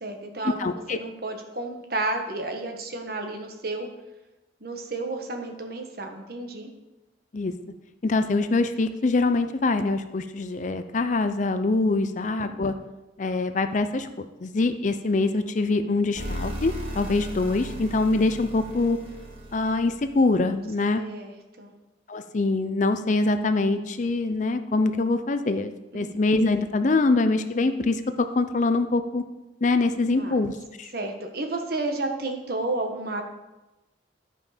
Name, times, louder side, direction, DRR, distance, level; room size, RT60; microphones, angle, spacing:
voice 1, 0.0-0.6 0.9-3.9 4.6-6.7 12.4-12.5 21.0-21.3 21.6-21.7 25.9-26.1 30.0-30.4 30.9-33.2, right 2 dB, 55° right, 4 dB, 1.3 m, -31 dB
voice 2, 0.6-1.0 7.3-7.5 8.0-12.7 13.2-19.0 19.5-21.0 22.1-29.2 29.6-30.9, left 3 dB, 40° left, 9 dB, 0.5 m, -24 dB
sound 1, 16.1-20.4, equal, 35° right, 1.7 m, -36 dB
11.0 x 5.3 x 5.0 m, 1.0 s
head